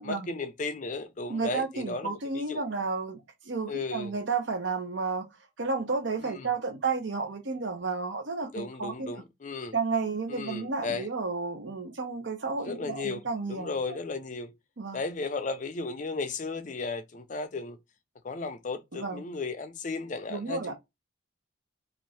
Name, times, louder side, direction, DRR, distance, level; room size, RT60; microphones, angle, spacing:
voice 1, 0.0-2.6 3.7-4.1 6.2-6.5 8.5-9.7 10.3-11.1 12.6-13.2 13.5-14.5 14.9-17.8 18.2-20.8, left 3 dB, 40° left, 0.5 m, -35 dB
voice 2, 1.3-5.3 5.6-9.1 9.7-14.0 14.8-15.0 18.9-19.2 20.3-20.7, right 4 dB, 80° right, 0.8 m, -32 dB
2.6 x 2.5 x 3.2 m
head